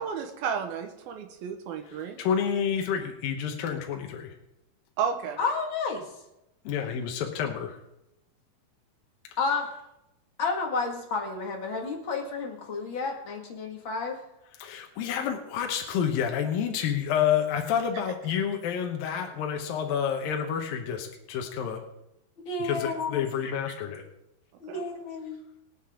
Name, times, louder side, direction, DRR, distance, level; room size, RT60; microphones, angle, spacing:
voice 1, 0.0-2.2 5.0-5.4 24.7-24.8, right 7 dB, 80° right, 5 dB, 3.1 m, -32 dB
voice 2, 2.2-4.3 6.7-7.8 14.6-21.8 22.6-24.0, left 8 dB, 75° left, 3 dB, 2.9 m, -29 dB
voice 3, 5.4-6.0 9.4-9.7 10.4-14.2 22.4-23.5 24.6-25.4, left 4 dB, 40° left, 1 dB, 2.4 m, -31 dB
23.5 x 8.3 x 3.8 m, 0.89 s
omnidirectional pair, 4.2 m